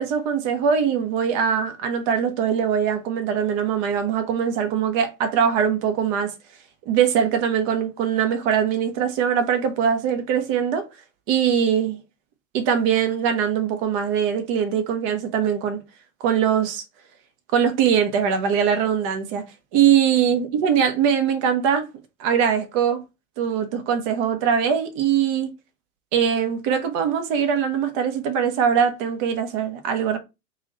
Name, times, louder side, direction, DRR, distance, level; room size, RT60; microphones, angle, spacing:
voice 1, 0.0-6.3 6.9-10.9 11.3-12.0 12.5-15.8 16.2-16.8 17.5-19.4 19.7-21.9 22.2-23.0 23.4-25.5 26.1-30.2, right 8 dB, 40° right, 0.9 m, -22 dB
3.0 x 2.6 x 3.9 m
hypercardioid pair, 115°, 45 cm